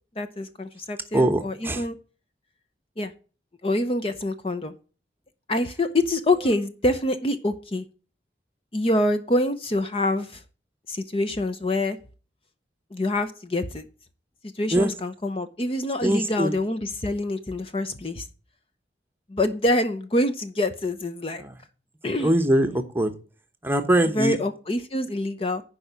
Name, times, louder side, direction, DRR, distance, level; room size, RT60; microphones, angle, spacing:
voice 1, 0.2-2.0 3.0-3.1 3.6-4.7 5.5-7.8 8.7-10.4 10.9-12.0 12.9-13.9 14.4-18.3 19.3-21.4 22.0-22.3 24.0-25.6, left 1 dB, 30° left, 0.7 m, -26 dB
voice 2, 1.1-1.8 14.7-14.9 16.0-16.5 21.4-21.5 22.2-23.1 23.6-24.4, right 1 dB, 10° right, 1.0 m, -22 dB
11.0 x 5.0 x 6.8 m
head